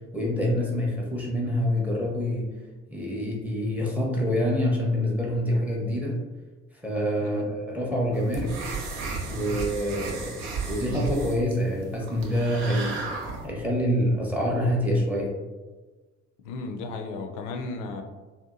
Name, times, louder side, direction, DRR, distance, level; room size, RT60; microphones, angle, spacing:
voice 1, 0.1-2.5 2.9-6.2 6.8-8.5 9.2-10.3 10.6-13.1 13.4-15.3, equal, 5° right, -2 dB, 0.7 m, -26 dB
sound 1, 8.1-13.5, right 4 dB, 65° right, 0.5 m, -34 dB
voice 2, 16.4-18.0, left 3 dB, 55° left, 5 dB, 0.5 m, -34 dB
2.7 x 2.2 x 2.4 m, 1.3 s
figure-of-eight pair, 45°, 38 cm